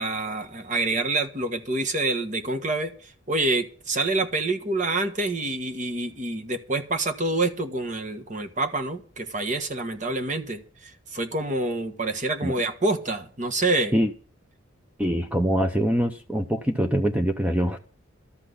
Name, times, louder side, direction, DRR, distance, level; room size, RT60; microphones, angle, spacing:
voice 1, 0.0-13.9, right 2 dB, 40° right, 1.5 m, -27 dB
voice 2, 15.0-17.8, equal, 5° right, 0.8 m, -24 dB
13.0 x 6.1 x 9.5 m
head